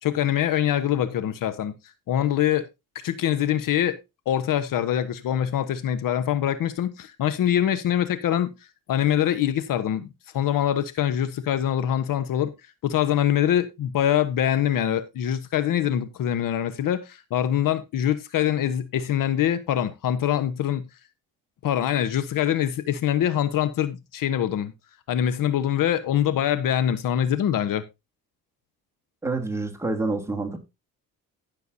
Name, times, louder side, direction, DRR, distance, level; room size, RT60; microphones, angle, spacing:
voice 1, 0.0-1.8 2.1-2.7 3.0-4.0 4.3-8.5 8.9-10.1 10.3-12.5 12.8-20.9 21.6-24.7 25.1-27.8, left 10 dB, 65° left, 1.1 m, -24 dB
voice 2, 29.2-30.6, right 3 dB, 5° right, 2.9 m, -27 dB
16.0 x 6.8 x 2.7 m
cardioid pair, 95°, 35 cm